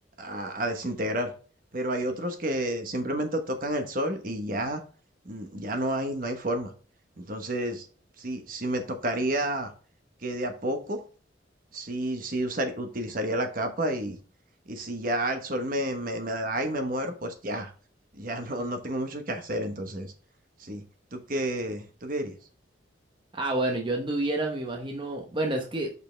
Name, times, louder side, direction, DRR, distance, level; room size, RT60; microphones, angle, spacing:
voice 1, 0.2-1.3 1.7-4.8 5.2-6.7 7.2-7.9 8.2-9.7 10.2-11.0 11.7-14.2 14.7-17.7 18.1-20.1 20.6-20.8 21.1-22.3, right 1 dB, 50° right, 6 dB, 1.1 m, -30 dB
voice 2, 23.3-25.9, right 2 dB, 25° right, 2 dB, 0.8 m, -29 dB
6.7 x 5.5 x 3.3 m, 0.39 s
head